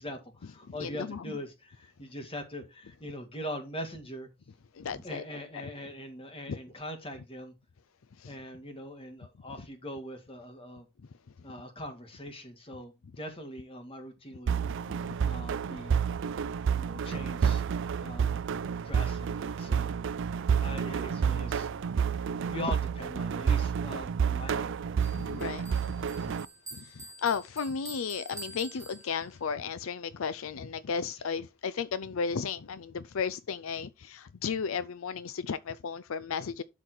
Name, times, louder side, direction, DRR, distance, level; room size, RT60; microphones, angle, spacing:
voice 1, 0.0-4.3 4.9-7.5 8.3-10.9 11.4-14.6 15.2-16.0 16.7-17.6 18.0-18.4 18.8-20.0 20.6-21.7 22.5-24.8, equal, 25° left, 1.9 m, -41 dB
voice 2, 0.8-1.2 4.8-5.2 6.5-6.6 8.2-8.3 25.2-25.7 26.0-26.1 26.7-36.6, left 6 dB, 65° left, 0.5 m, -34 dB
sound 1, 14.5-26.4, right 7 dB, 55° right, 0.4 m, -30 dB
Bell, 25.0-29.5, right 2 dB, 15° right, 2.1 m, -47 dB
12.0 x 4.1 x 4.7 m
head